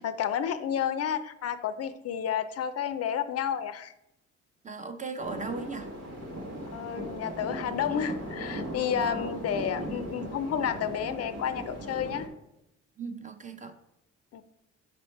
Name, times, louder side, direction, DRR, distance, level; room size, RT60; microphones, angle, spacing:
voice 1, 0.0-3.9 6.7-12.3 14.3-14.4, left 8 dB, 55° left, 12 dB, 0.4 m, -31 dB
voice 2, 4.6-5.9 9.0-9.3 13.0-13.7, right 4 dB, 25° right, 7 dB, 0.6 m, -37 dB
sound 1, 5.2-12.3, equal, 85° right, 1.2 m, -38 dB
5.2 x 4.2 x 4.5 m, 0.85 s
cardioid pair, 90°, 30 cm